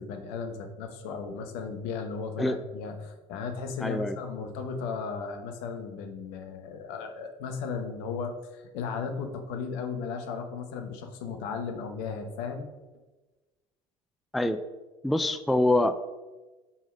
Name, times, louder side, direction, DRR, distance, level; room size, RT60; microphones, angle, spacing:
voice 1, 0.0-12.7, left 5 dB, 65° left, 6 dB, 1.1 m, -35 dB
voice 2, 3.8-4.2 14.3-14.6 15.0-15.9, left 1 dB, ahead, 10 dB, 0.4 m, -25 dB
5.6 x 5.0 x 5.0 m, 1.2 s
hypercardioid pair, 75°, 18 cm